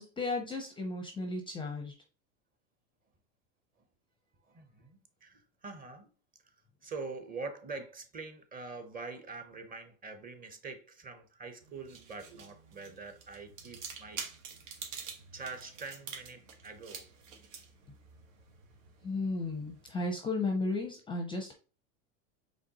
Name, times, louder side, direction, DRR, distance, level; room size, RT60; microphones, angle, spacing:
voice 1, 0.0-1.9 19.0-21.5, left 3 dB, 15° left, 0.5 m, -34 dB
voice 2, 4.5-6.1 6.8-14.2 15.3-17.1, right 4 dB, 20° right, 0.7 m, -44 dB
sound 1, 11.6-20.1, right 6 dB, 80° right, 1.5 m, -48 dB
5.1 x 3.4 x 2.8 m
supercardioid pair, 130°, 39 cm